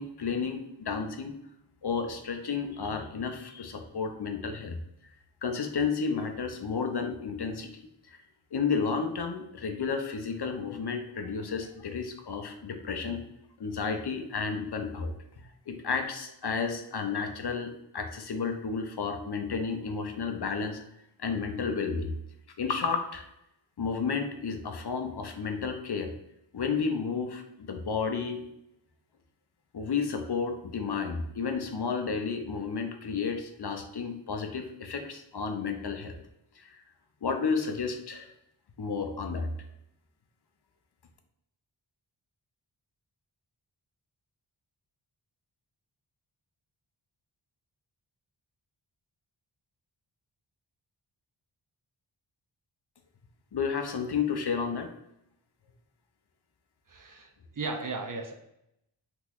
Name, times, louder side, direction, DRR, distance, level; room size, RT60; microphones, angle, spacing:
voice 1, 0.0-1.3 1.8-4.8 5.4-8.2 8.5-13.2 13.6-20.8 21.2-22.1 22.6-23.3 23.8-26.1 26.5-28.4 29.7-36.2 36.6-36.7 37.2-38.3 38.8-39.5 53.5-54.9, left 5 dB, 55° left, 5 dB, 0.5 m, -32 dB
voice 2, 56.9-57.3 57.6-58.4, right 3 dB, 45° right, 3 dB, 0.5 m, -35 dB
3.7 x 2.9 x 2.4 m, 0.80 s
wide cardioid pair, 40°, 49 cm